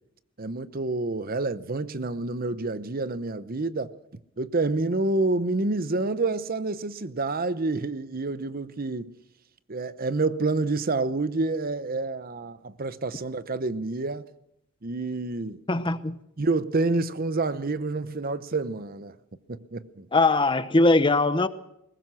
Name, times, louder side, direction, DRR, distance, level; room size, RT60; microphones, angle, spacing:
voice 1, 0.4-3.9 4.4-9.1 9.7-14.3 14.8-15.6 16.4-19.2 19.5-20.1, right 3 dB, 45° right, 0.8 m, -28 dB
voice 2, 15.7-16.1 20.1-21.5, left 2 dB, 25° left, 0.9 m, -21 dB
21.5 x 19.0 x 6.2 m
head